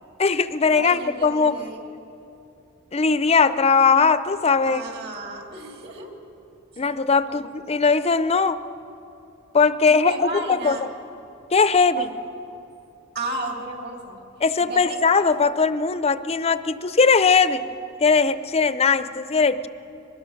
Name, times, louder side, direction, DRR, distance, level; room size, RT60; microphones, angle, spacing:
voice 1, 0.2-1.5 2.9-4.8 6.8-8.6 9.5-10.8 11.5-12.1 14.4-17.6 18.0-19.7, left 5 dB, 30° left, 13 dB, 0.6 m, -19 dB
voice 2, 0.7-1.8 4.6-6.2 7.3-7.5 9.9-10.9 12.0-12.2 13.1-14.2 14.7-15.0, right 2 dB, 55° right, 2 dB, 3.1 m, -33 dB
23.5 x 21.5 x 6.5 m, 2.8 s
head